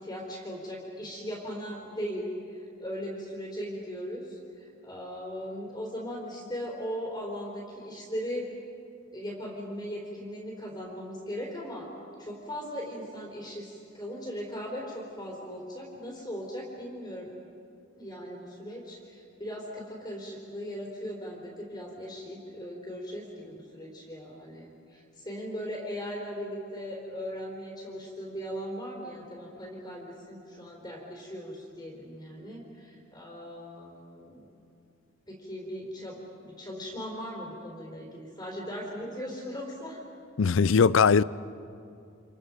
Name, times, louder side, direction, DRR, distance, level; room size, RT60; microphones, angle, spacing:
voice 1, 0.0-8.5 9.1-11.9 12.2-17.3 18.0-34.5 35.3-40.0, equal, 20° left, 4.2 m, -38 dB
voice 2, 40.4-41.2, left 5 dB, 70° left, 0.5 m, -20 dB
29.5 x 27.5 x 5.3 m
head